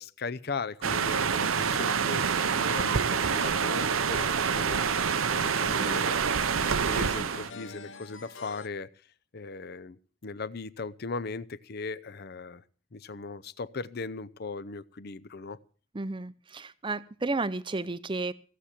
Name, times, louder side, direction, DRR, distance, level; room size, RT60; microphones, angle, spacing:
voice 1, 0.0-6.2 6.6-8.9 9.3-12.6 12.9-15.6, left 4 dB, 50° left, 18 dB, 0.6 m, -38 dB
sound 1, 0.8-7.5, right 6 dB, 85° right, 0.8 m, -27 dB
sound 2, 1.0-8.7, left 3 dB, 65° left, 1.1 m, -46 dB
voice 2, 15.9-18.3, right 3 dB, 25° right, 16 dB, 0.6 m, -32 dB
16.5 x 8.3 x 7.4 m, 0.41 s
head